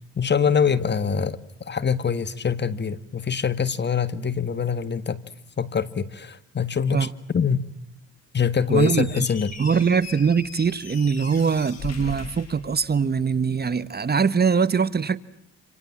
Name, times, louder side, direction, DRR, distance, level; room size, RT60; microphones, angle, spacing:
voice 1, 0.1-5.2 5.6-7.1 7.3-7.6 8.3-9.5, left 6 dB, 35° left, 1.8 m, -24 dB
Squeak, 8.7-13.3, left 5 dB, 55° left, 7.0 m, -40 dB
voice 2, 8.7-9.3 9.6-15.2, right 6 dB, 35° right, 1.4 m, -22 dB
28.0 x 27.0 x 7.4 m
cardioid pair, 90°, 30 cm